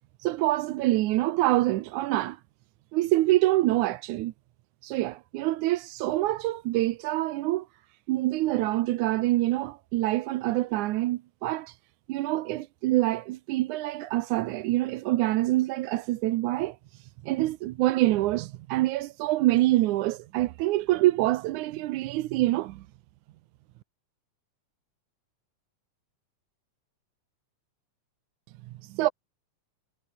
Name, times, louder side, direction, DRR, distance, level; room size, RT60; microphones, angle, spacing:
voice 1, 0.2-2.4 2.9-4.3 4.8-7.7 8.1-11.8 12.1-22.9 28.7-29.1, right 16 dB, 80° right, 2.2 m, -26 dB
omnidirectional pair, 3.5 m